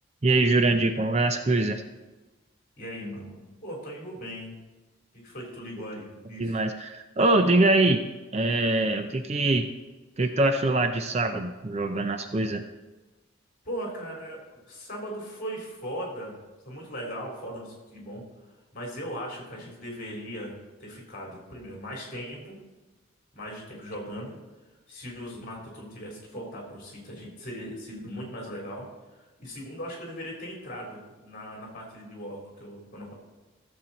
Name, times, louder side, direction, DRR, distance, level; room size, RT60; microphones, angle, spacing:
voice 1, 0.2-1.8 6.4-8.1 8.3-9.7 10.2-12.6, right 2 dB, 30° right, 7 dB, 0.5 m, -23 dB
voice 2, 2.8-4.5 5.1-6.6 13.6-16.3 16.6-18.2 18.7-22.6 23.3-24.4 24.9-28.9 29.4-33.1, equal, 40° left, -2 dB, 3.4 m, -38 dB
14.5 x 7.3 x 4.2 m, 1.2 s
head